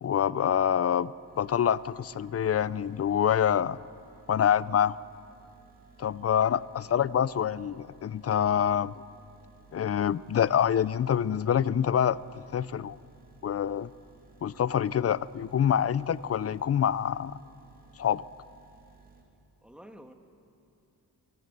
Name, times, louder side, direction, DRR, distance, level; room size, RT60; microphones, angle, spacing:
voice 1, 0.0-3.8 4.3-5.0 6.0-8.9 9.7-12.2 12.5-13.0 13.4-13.9 14.4-17.4 18.0-18.2, left 9 dB, 40° left, 19 dB, 0.4 m, -26 dB
sound 1, 0.8-19.2, right 4 dB, 20° right, 3.1 m, -58 dB
voice 2, 6.8-7.1 8.7-8.9 19.6-20.1, equal, ahead, 5 dB, 1.6 m, -51 dB
23.0 x 16.0 x 8.0 m, 2.6 s
cardioid pair, 100°, 40 cm